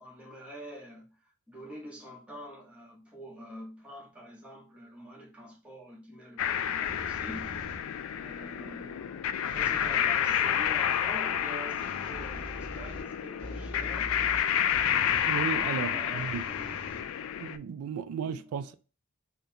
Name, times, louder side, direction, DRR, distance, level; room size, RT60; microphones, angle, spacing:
voice 1, 0.0-14.2 15.4-16.8 18.2-18.7, equal, 5° right, 1.0 m, -46 dB
sound 1, 6.4-17.6, left 9 dB, 65° left, 0.3 m, -30 dB
sound 2, 6.8-8.1 9.4-10.1 11.8-15.4 16.1-17.6, equal, 25° left, 1.5 m, -44 dB
voice 2, 15.3-16.4 17.4-18.7, right 7 dB, 85° right, 0.3 m, -35 dB
3.7 x 2.1 x 2.7 m
head